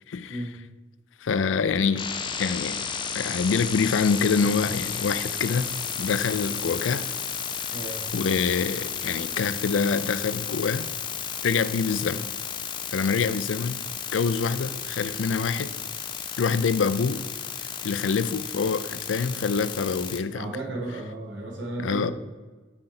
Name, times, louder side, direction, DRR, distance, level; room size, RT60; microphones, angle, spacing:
voice 1, 0.1-0.4 1.2-2.1 2.4-2.9 3.1-5.7 6.0-7.1 8.1-10.9 11.4-12.3 12.9-13.8 14.1-15.7 16.4-17.2 17.8-20.5 21.8-22.1, left 5 dB, 85° left, 14 dB, 0.4 m, -25 dB
sound 1, 2.0-20.2, left 7 dB, 25° left, 0.5 m, -33 dB
voice 2, 7.7-8.0 20.2-22.1, right 2 dB, 70° right, -1 dB, 1.8 m, -34 dB
5.8 x 5.0 x 5.9 m, 1.3 s
head